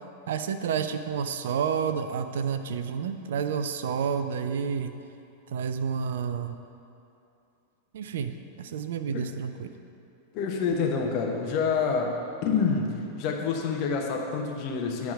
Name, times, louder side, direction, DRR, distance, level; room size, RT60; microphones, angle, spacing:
voice 1, 0.3-4.9 5.5-6.6 7.9-9.7, right 7 dB, 60° right, 9 dB, 0.4 m, -30 dB
voice 2, 10.3-12.2 12.4-15.1, left 5 dB, 45° left, 1 dB, 1.0 m, -27 dB
9.8 x 3.6 x 6.4 m, 2.6 s
figure-of-eight pair, 90°, 0 cm